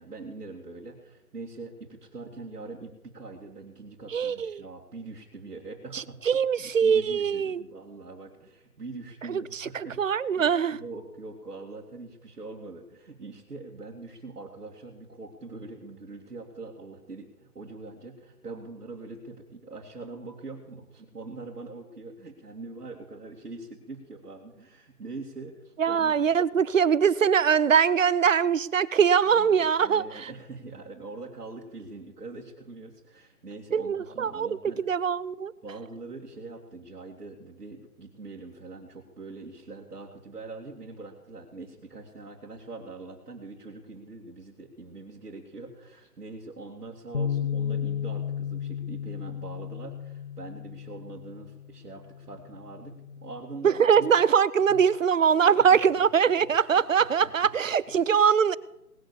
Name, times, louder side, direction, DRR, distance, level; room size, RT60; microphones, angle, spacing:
voice 1, 0.0-6.2 6.6-10.0 10.4-26.1 29.3-34.8 35.6-54.1 54.7-54.8 55.7-55.8 56.3-56.5 56.7-56.9 57.2-57.3, right 3 dB, 85° right, -2 dB, 2.7 m, -43 dB
voice 2, 4.1-4.6 5.9-7.6 9.3-10.8 25.8-30.3 33.7-35.5 53.6-58.6, right 7 dB, 55° right, 20 dB, 0.6 m, -23 dB
Bass guitar, 47.1-53.4, left 8 dB, 40° left, 1.2 m, -34 dB
19.5 x 8.4 x 7.0 m, 0.88 s
hypercardioid pair, 165°, 45 cm